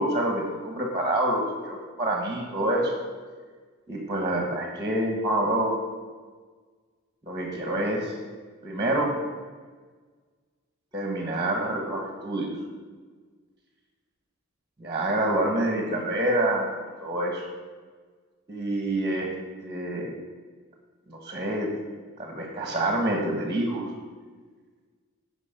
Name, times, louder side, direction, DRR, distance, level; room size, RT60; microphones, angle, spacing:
voice 1, 0.0-3.0 3.9-5.8 7.3-8.1 8.6-9.1 10.9-12.5 14.8-16.7 17.0-17.4 18.5-19.3 19.6-20.1 21.1-21.7 22.2-23.9, right 1 dB, 20° right, 1 dB, 1.3 m, -27 dB
9.6 x 5.4 x 6.6 m, 1.5 s
head